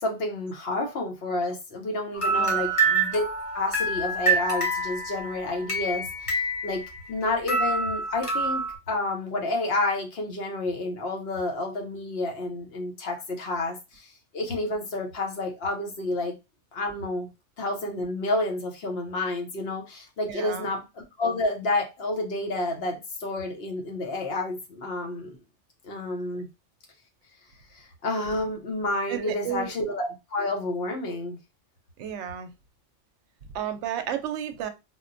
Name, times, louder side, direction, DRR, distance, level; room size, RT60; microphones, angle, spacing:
voice 1, 0.0-3.2 3.5-6.8 7.1-14.1 14.3-16.3 16.7-17.3 17.6-25.4 25.8-26.5 27.7-31.4, left 2 dB, 60° left, 0.9 m, -30 dB
sound 1, 2.1-7.2 7.5-8.8, right 3 dB, 30° left, 0.8 m, -27 dB
voice 2, 2.3-2.7 20.3-20.7 26.3-26.4 29.1-29.7 32.0-32.5 33.5-34.7, right 9 dB, 75° right, 0.9 m, -32 dB
3.8 x 2.1 x 2.5 m
omnidirectional pair, 1.3 m